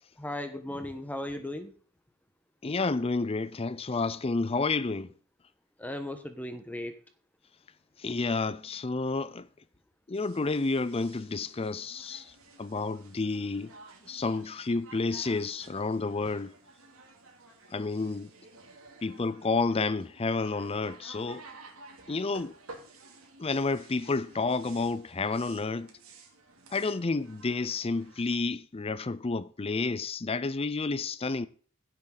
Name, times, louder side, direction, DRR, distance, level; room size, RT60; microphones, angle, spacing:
voice 1, 0.2-1.7 5.8-6.9, left 1 dB, 5° left, 1.1 m, -36 dB
voice 2, 2.6-5.1 8.0-9.5 10.1-12.3 12.6-13.7 14.1-16.5 17.7-18.3 19.0-21.4 22.1-22.5 23.4-25.9 26.7-31.5, left 3 dB, 25° left, 0.5 m, -30 dB
sound 1, 10.1-28.4, right 3 dB, 65° right, 2.7 m, -53 dB
16.0 x 7.5 x 4.0 m
head